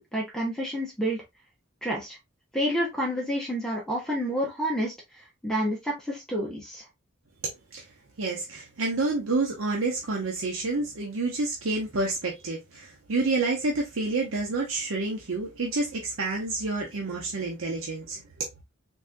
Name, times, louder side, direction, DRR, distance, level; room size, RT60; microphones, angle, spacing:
voice 1, 0.1-1.2 1.8-2.2 2.5-4.9 5.4-6.8, equal, 5° left, 0.9 m, -29 dB
voice 2, 8.2-18.5, right 3 dB, 85° right, 0.8 m, -29 dB
3.9 x 2.7 x 2.3 m
head